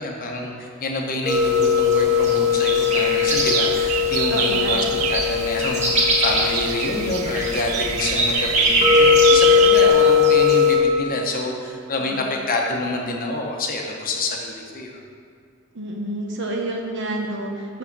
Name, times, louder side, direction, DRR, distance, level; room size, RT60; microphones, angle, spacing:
voice 1, 0.0-15.0, left 2 dB, 40° left, 0 dB, 0.9 m, -27 dB
sound 1, 1.2-10.8, left 5 dB, 35° right, 1.2 m, -19 dB
sound 2, 3.3-9.9, right 9 dB, 85° right, 0.4 m, -27 dB
voice 2, 4.3-4.8 12.1-12.2 15.7-17.8, right 1 dB, 60° right, 1 dB, 1.1 m, -29 dB
6.4 x 4.9 x 6.7 m, 2.1 s
head